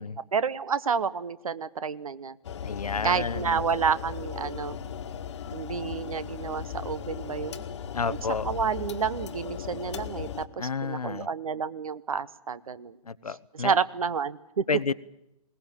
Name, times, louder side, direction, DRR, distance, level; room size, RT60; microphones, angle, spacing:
voice 1, 0.3-2.4 3.0-4.8 5.5-7.7 8.1-8.2 8.4-13.0 13.5-14.6, right 6 dB, 65° right, 17 dB, 1.1 m, -29 dB
sound 1, 2.4-10.5, left 8 dB, 50° left, 1.5 m, -37 dB
voice 2, 2.6-3.6 7.9-8.5 10.6-11.3 13.1-13.7 14.7-14.9, left 5 dB, 80° left, 16 dB, 0.9 m, -30 dB
21.5 x 19.0 x 9.0 m, 0.85 s
figure-of-eight pair, 130°, 19 cm